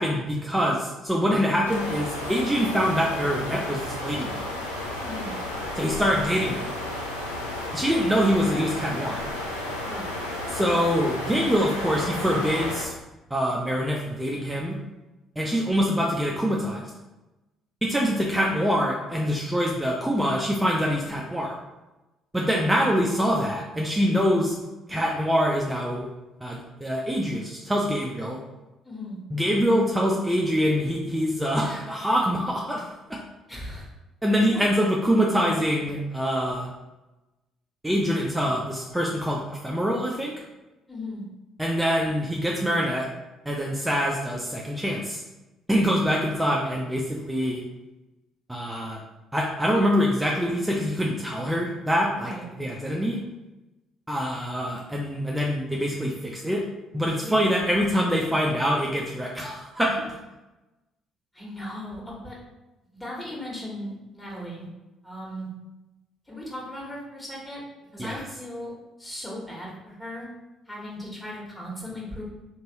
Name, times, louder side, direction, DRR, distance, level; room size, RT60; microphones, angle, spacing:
voice 1, 0.0-4.4 5.8-6.7 7.7-9.3 10.5-12.9 13.3-14.8 15.4-16.8 17.8-21.5 22.3-24.5 24.9-26.1 26.4-28.4 29.3-33.2 34.2-36.7 37.8-40.3 41.6-43.1 43.5-45.2 45.7-47.6 48.5-49.0 49.3-52.3 52.6-53.2 54.1-56.6 56.9-60.2 68.0-68.2, equal, 10° right, -2 dB, 0.5 m, -25 dB
sound 1, 1.6-12.8, left 1 dB, 90° left, 0.4 m, -32 dB
voice 2, 5.0-5.3 9.8-10.1 22.4-22.7 28.8-29.2 33.5-33.9 34.5-34.9 40.9-41.2 52.2-52.5 57.2-57.5 61.3-62.4 62.9-64.7 65.0-65.5 66.3-67.6 67.9-68.7 69.0-70.3 70.6-72.2, left 1 dB, 15° left, -5 dB, 1.3 m, -37 dB
3.0 x 2.6 x 2.9 m, 1.0 s
figure-of-eight pair, 50°, 0 cm